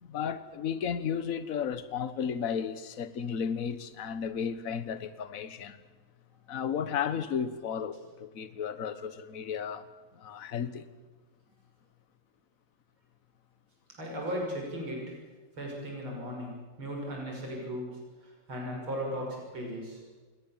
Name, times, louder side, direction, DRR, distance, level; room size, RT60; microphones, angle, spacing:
voice 1, 0.0-5.8 6.5-9.9 10.1-10.9, left 7 dB, 45° left, 1.5 m, -34 dB
voice 2, 13.9-15.1 15.6-20.0, equal, 70° right, 7.0 m, -37 dB
29.0 x 21.5 x 7.4 m
omnidirectional pair, 2.4 m